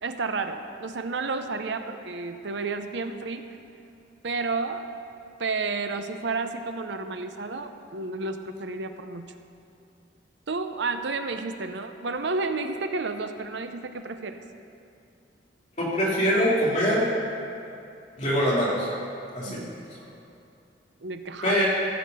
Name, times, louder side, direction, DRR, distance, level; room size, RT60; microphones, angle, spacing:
voice 1, 0.0-3.5 4.2-4.9 5.4-9.3 10.5-14.4 19.4-19.7 21.0-21.6, right 3 dB, 65° right, 8 dB, 0.7 m, -31 dB
voice 2, 15.8-17.0 18.2-18.9 19.3-19.6 21.4-21.7, equal, 35° left, -7 dB, 2.7 m, -23 dB
15.0 x 6.6 x 5.4 m, 2.6 s
head